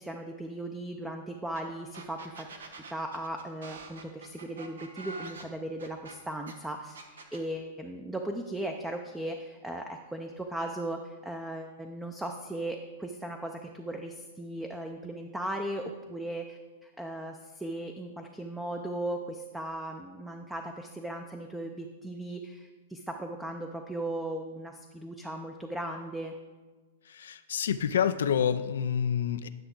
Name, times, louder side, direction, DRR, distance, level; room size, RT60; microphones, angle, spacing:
voice 1, 0.0-2.5 2.9-26.3, right 1 dB, 5° right, 4 dB, 0.5 m, -37 dB
sound 1, 1.5-1.6 1.9-6.5 6.9-7.4, right 3 dB, 85° right, 1.0 m, -45 dB
voice 2, 27.1-29.5, left 8 dB, 80° left, 11 dB, 0.4 m, -28 dB
10.5 x 5.7 x 3.8 m, 1.3 s
hypercardioid pair, 125°, 0 cm